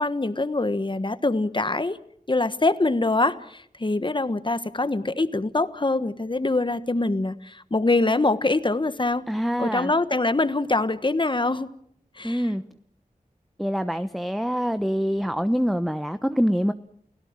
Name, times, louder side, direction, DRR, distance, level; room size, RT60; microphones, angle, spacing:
voice 1, 0.0-2.0 2.3-9.3 9.6-11.7 12.2-12.5, left 2 dB, 35° left, 12 dB, 1.3 m, -24 dB
voice 2, 9.3-9.9 12.2-12.6 13.6-16.7, equal, ahead, 10 dB, 0.9 m, -25 dB
29.5 x 17.0 x 7.4 m, 0.69 s
wide cardioid pair, 55°, 15 cm